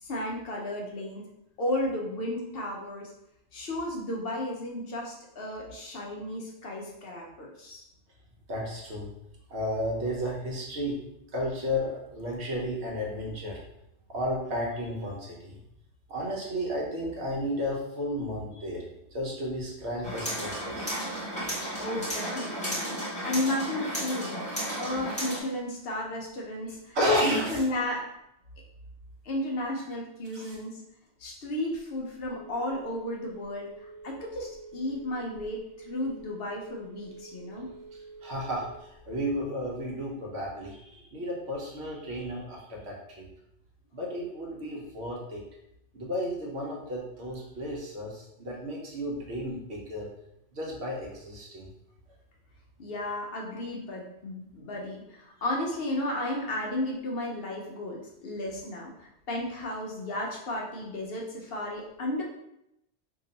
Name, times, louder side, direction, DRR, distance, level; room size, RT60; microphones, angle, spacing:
voice 1, 0.0-1.2 1.6-3.1 3.5-7.8 21.8-27.0 27.2-28.0 29.2-30.7 31.2-37.7 52.8-62.2, left 1 dB, 60° left, -1 dB, 0.8 m, -33 dB
voice 2, 8.5-9.1 9.5-11.0 11.3-13.6 14.1-15.6 16.1-18.8 19.1-21.1 26.7-27.7 30.3-30.6 37.9-43.3 43.9-45.4 45.9-50.1 50.5-51.7, equal, 65° right, -3 dB, 1.2 m, -33 dB
sound 1, 20.0-25.4, equal, 5° left, 1.2 m, -33 dB
Telephone, 31.8-39.1, right 3 dB, 30° right, 0.4 m, -47 dB
2.9 x 2.7 x 3.9 m, 0.82 s
omnidirectional pair, 1.2 m